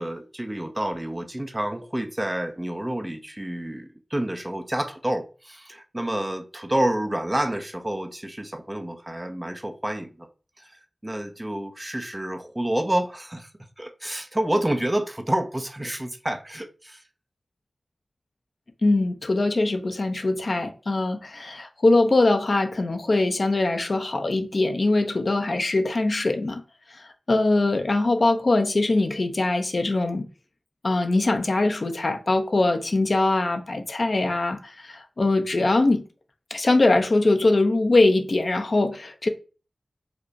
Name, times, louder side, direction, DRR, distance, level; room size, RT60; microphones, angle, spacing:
voice 1, 0.0-10.3 10.6-13.5 13.8-17.0, right 1 dB, 20° right, 0.5 m, -29 dB
voice 2, 18.8-26.6 26.9-30.3 30.8-36.0 36.5-39.3, left 2 dB, 60° left, 0.6 m, -22 dB
5.0 x 2.0 x 4.6 m
wide cardioid pair, 65°, 0 cm